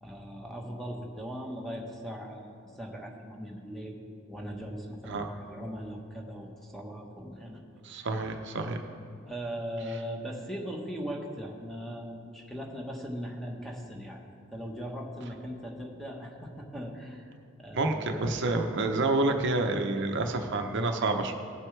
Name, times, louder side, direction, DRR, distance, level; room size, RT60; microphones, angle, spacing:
voice 1, 0.0-4.0 4.3-7.6 7.9-8.1 9.3-14.2 14.5-17.3 17.6-18.1, equal, ahead, 0 dB, 1.2 m, -39 dB
voice 2, 7.8-8.8 17.7-21.4, right 2 dB, 60° right, 4 dB, 0.7 m, -28 dB
18.0 x 7.6 x 3.3 m, 2.5 s
head